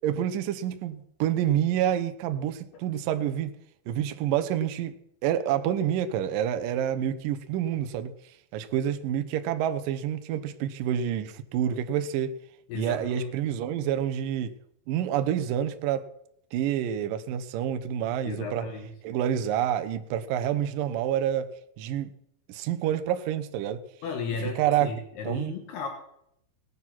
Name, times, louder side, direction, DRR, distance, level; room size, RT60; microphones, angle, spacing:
voice 1, 0.0-3.5 3.9-4.9 5.2-8.1 8.5-12.4 12.7-14.5 14.9-16.1 16.5-18.6 19.0-21.5 21.8-22.1 22.5-23.8 24.6-24.9 25.2-25.5, right 10 dB, 75° right, 2.1 m, -28 dB
voice 2, 12.7-13.3 18.3-18.9 24.0-25.9, left 4 dB, 70° left, 3.4 m, -34 dB
18.0 x 9.8 x 5.9 m
omnidirectional pair, 5.0 m